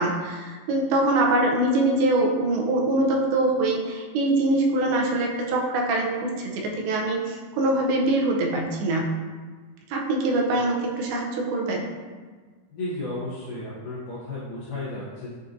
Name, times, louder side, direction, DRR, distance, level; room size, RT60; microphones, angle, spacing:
voice 1, 0.0-9.1 9.9-11.9, right 2 dB, 85° right, -1 dB, 2.5 m, -23 dB
voice 2, 12.7-15.4, left 2 dB, 85° left, -8 dB, 1.8 m, -33 dB
6.7 x 2.5 x 2.5 m, 1.4 s
omnidirectional pair, 4.4 m